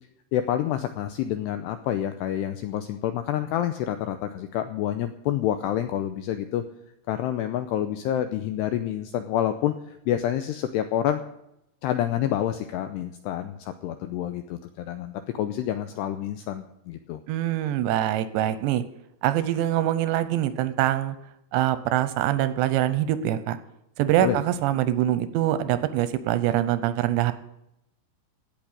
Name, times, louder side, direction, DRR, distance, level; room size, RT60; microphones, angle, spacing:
voice 1, 0.3-6.6 7.1-11.2 11.8-17.2 24.2-24.4, left 11 dB, 90° left, 9 dB, 2.4 m, -28 dB
voice 2, 17.3-18.8 19.2-21.2 21.5-23.6 24.0-27.3, right 12 dB, 80° right, 13 dB, 2.7 m, -24 dB
17.0 x 6.1 x 9.9 m, 0.84 s
omnidirectional pair, 5.7 m